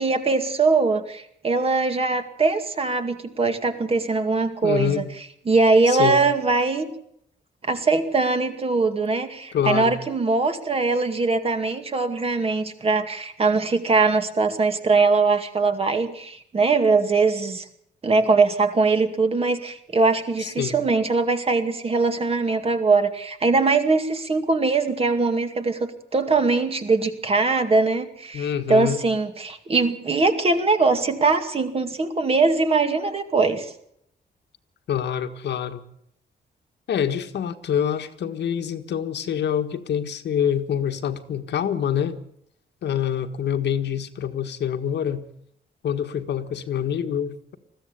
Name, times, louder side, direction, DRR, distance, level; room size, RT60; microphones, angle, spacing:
voice 1, 0.0-5.0 5.5-6.9 7.6-17.6 18.0-33.7, right 3 dB, 35° right, 7 dB, 2.2 m, -21 dB
voice 2, 4.6-5.1 5.9-6.2 9.5-9.9 20.4-20.8 28.3-29.0 34.9-35.8 36.9-42.2 42.8-45.2 45.8-47.6, left 9 dB, 75° left, 7 dB, 1.7 m, -26 dB
21.0 x 15.0 x 8.4 m, 0.71 s
wide cardioid pair, 150°, 18 cm